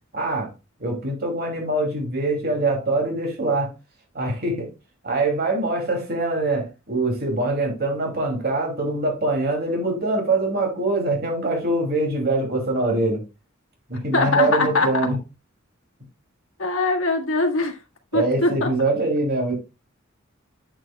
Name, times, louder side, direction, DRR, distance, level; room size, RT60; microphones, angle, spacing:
voice 1, 0.1-0.5 0.8-3.7 4.1-4.7 5.0-13.2 13.9-15.1 18.1-19.5, right 2 dB, 50° right, 2.5 m, -23 dB
voice 2, 14.1-14.9 16.6-17.8 18.1-18.7, left 3 dB, 70° left, 1.5 m, -21 dB
8.8 x 6.8 x 2.2 m
head